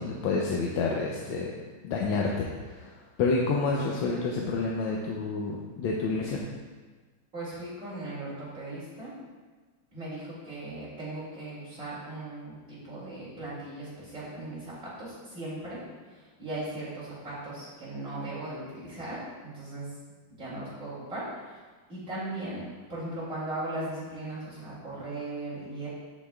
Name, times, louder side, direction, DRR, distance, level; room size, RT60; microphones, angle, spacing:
voice 1, 0.0-1.5 1.8-2.9 3.2-6.4, left 4 dB, 80° left, -1 dB, 1.5 m, -29 dB
voice 2, 7.3-9.1 9.9-12.6 12.8-15.8 16.4-19.2 19.4-19.9 20.4-21.6 21.9-22.6 22.9-25.9, right 2 dB, 40° right, -9 dB, 2.7 m, -38 dB
14.0 x 5.0 x 2.3 m, 1.4 s
omnidirectional pair, 2.1 m